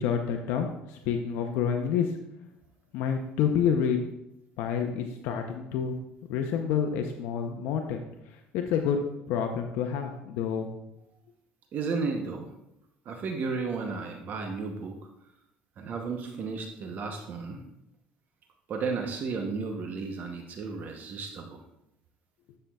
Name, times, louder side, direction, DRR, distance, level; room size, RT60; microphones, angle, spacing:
voice 1, 0.0-2.2 2.9-4.0 4.6-6.0 6.3-9.0 9.3-10.7, left 7 dB, 75° left, 4 dB, 0.6 m, -28 dB
voice 2, 11.7-12.5 13.1-15.0 15.8-17.6 18.7-21.6, right 4 dB, 45° right, 3 dB, 0.8 m, -33 dB
11.5 x 6.6 x 2.3 m, 0.84 s
cardioid pair, 120°, 4 cm